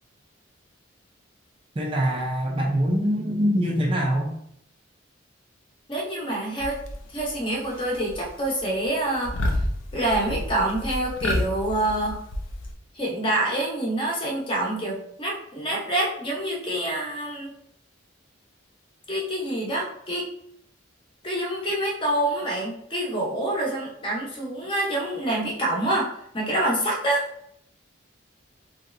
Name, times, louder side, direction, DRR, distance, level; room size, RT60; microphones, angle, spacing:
voice 1, 1.8-4.4, equal, 25° right, -2 dB, 0.4 m, -24 dB
voice 2, 5.9-6.8 7.1-9.3 9.9-12.1 12.9-17.5 19.1-20.3 21.2-27.2, right 1 dB, 25° left, -2 dB, 0.7 m, -26 dB
sound 1, 6.6-7.3 7.6-8.3 8.6-8.9 9.2-12.7, left 1 dB, 70° left, 0.5 m, -30 dB
3.1 x 2.7 x 2.4 m, 0.71 s
head